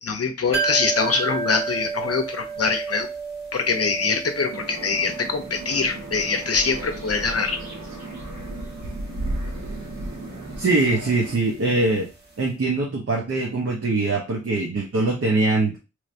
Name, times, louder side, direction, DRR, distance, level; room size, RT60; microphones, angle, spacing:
voice 1, 0.0-3.1 3.5-7.6, left 4 dB, 55° left, 6 dB, 0.7 m, -24 dB
sound 1, 0.5-12.1 12.4-12.5, right 5 dB, 35° right, 1.1 m, -33 dB
sound 2, 4.5-11.4, right 1 dB, 70° right, 1.1 m, -34 dB
voice 2, 10.6-12.1 12.4-15.8, right 2 dB, 50° right, -2 dB, 0.9 m, -22 dB
3.2 x 2.6 x 3.2 m, 0.30 s
wide cardioid pair, 85°, 29 cm